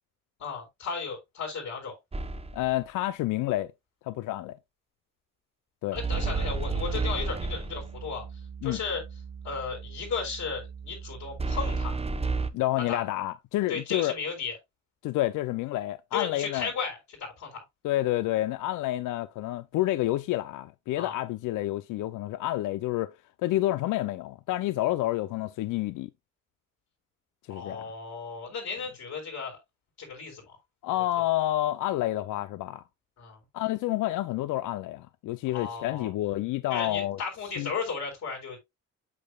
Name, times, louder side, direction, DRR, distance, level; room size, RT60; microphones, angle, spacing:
voice 1, 0.4-2.0 5.9-8.2 8.6-9.0 9.4-12.0 12.8-13.0 13.7-14.6 16.1-17.6 21.0-21.1 27.5-29.6 30.0-30.6 33.2-33.4 35.5-36.1 36.7-38.6, left 5 dB, 65° left, 5.1 m, -35 dB
sound 1, 2.1-2.7 6.0-8.0 11.4-12.5, right 4 dB, 20° right, 0.8 m, -30 dB
voice 2, 2.5-3.7 4.0-4.6 5.8-6.0 8.6-8.8 12.5-14.1 15.0-16.7 17.8-23.1 23.4-26.1 27.5-27.8 30.8-32.8 33.5-37.2 37.6-37.7, left 15 dB, 85° left, 0.6 m, -29 dB
bass sub in C sustained, 6.3-11.6, right 7 dB, 85° right, 2.3 m, -43 dB
8.4 x 6.7 x 2.3 m
cardioid pair, 90°, 30 cm